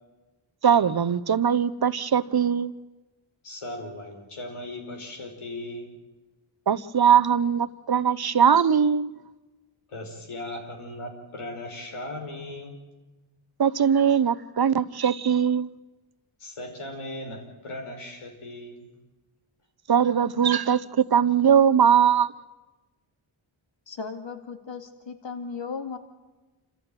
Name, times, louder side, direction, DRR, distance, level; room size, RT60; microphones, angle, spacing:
voice 1, 0.6-2.7 6.7-9.2 13.6-15.7 19.9-22.3, right 8 dB, 50° right, 0.9 m, -21 dB
voice 2, 3.4-5.9 9.9-12.7 16.4-18.9, left 1 dB, 85° left, 5.0 m, -38 dB
voice 3, 23.9-26.0, left 5 dB, 60° left, 2.3 m, -36 dB
28.0 x 15.0 x 9.2 m
cardioid pair, 65°, 49 cm